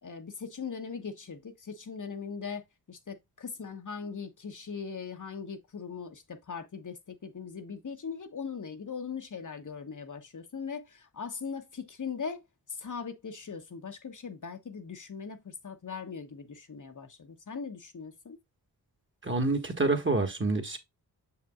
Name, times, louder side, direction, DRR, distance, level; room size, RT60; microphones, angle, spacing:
voice 1, 0.0-12.4 12.7-18.4, left 6 dB, 45° left, 1.1 m, -40 dB
voice 2, 19.2-20.8, right 3 dB, 30° right, 1.6 m, -27 dB
6.7 x 5.8 x 2.4 m
cardioid pair, 55°, 41 cm